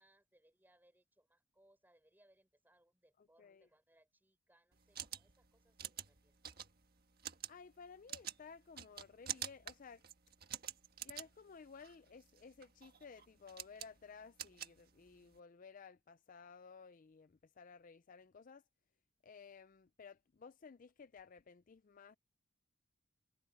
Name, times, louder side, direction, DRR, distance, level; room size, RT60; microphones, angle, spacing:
voice 1, 0.0-6.6, right 1 dB, 10° right, 5.3 m, -72 dB
voice 2, 3.2-3.7 7.5-10.0 11.0-18.6 19.2-22.2, left 5 dB, 40° left, 0.4 m, -56 dB
sound 1, 4.7-15.4, right 10 dB, 45° right, 1.6 m, -48 dB
head